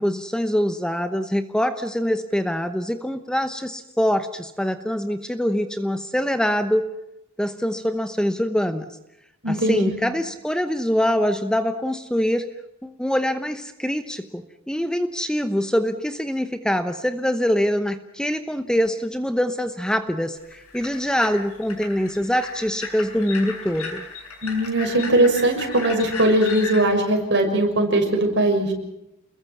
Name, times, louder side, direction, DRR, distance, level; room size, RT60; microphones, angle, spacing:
voice 1, 0.0-6.9 7.4-9.0 9.5-12.5 12.8-24.0, equal, 5° left, 9 dB, 0.9 m, -24 dB
voice 2, 9.4-10.0 24.4-28.7, right 1 dB, 55° right, 3 dB, 6.3 m, -20 dB
sound 1, 20.3-26.8, left 4 dB, 85° left, 6.9 m, -35 dB
29.0 x 21.5 x 6.0 m, 0.88 s
head